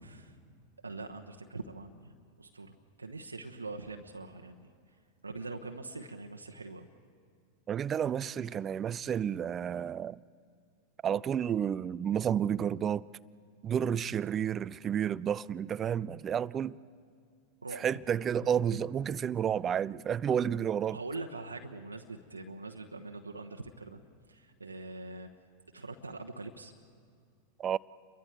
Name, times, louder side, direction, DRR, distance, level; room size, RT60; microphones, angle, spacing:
voice 1, 0.0-0.3 0.8-4.7 5.2-6.9 17.6-17.8 18.4-18.5 20.9-24.0 24.3-25.3 25.7-26.7, right 3 dB, 80° right, 1.1 m, -43 dB
voice 2, 7.7-10.2 11.0-13.0 13.6-16.8 17.8-21.0 27.6-27.8, right 8 dB, 25° right, 0.4 m, -31 dB
29.5 x 23.0 x 4.6 m
figure-of-eight pair, 90°, 0 cm